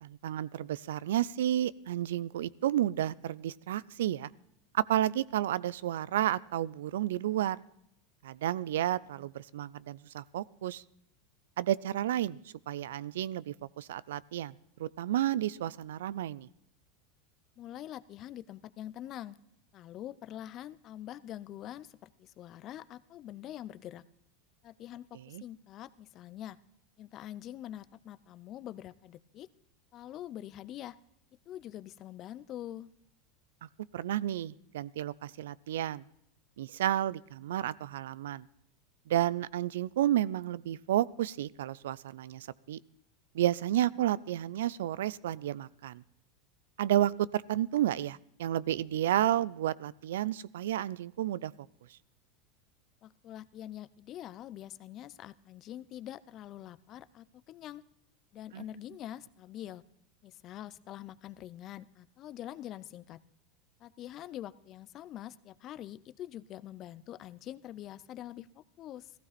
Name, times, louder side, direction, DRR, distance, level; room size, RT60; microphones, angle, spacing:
voice 1, 0.0-4.3 4.7-7.6 8.2-10.8 11.6-12.4 12.7-14.5 14.8-16.5 25.3-25.4 33.9-36.0 36.6-38.5 39.1-42.8 43.3-46.0 46.8-51.5 51.9-52.0 58.5-58.6, right 12 dB, 85° right, 21 dB, 0.4 m, -31 dB
voice 2, 17.6-19.4 19.7-24.0 24.6-26.6 27.0-29.5 29.9-31.0 31.5-32.9 53.0-57.8 58.3-59.8 60.2-63.2 63.8-69.1, left 12 dB, 45° left, 17 dB, 0.6 m, -45 dB
15.0 x 15.0 x 4.2 m, 0.76 s
supercardioid pair, 110°, 0 cm